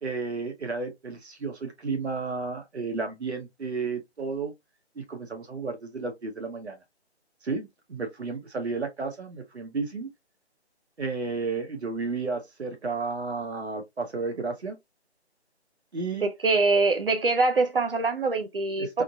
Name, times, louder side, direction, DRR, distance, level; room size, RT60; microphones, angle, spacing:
voice 1, 0.0-4.5 4.9-6.8 7.4-10.1 11.0-14.8 15.9-16.3 18.8-19.0, right 4 dB, 75° right, 1.1 m, -32 dB
voice 2, 16.2-19.0, right 3 dB, 55° right, 0.5 m, -24 dB
3.6 x 2.1 x 2.5 m
figure-of-eight pair, 165°, 34 cm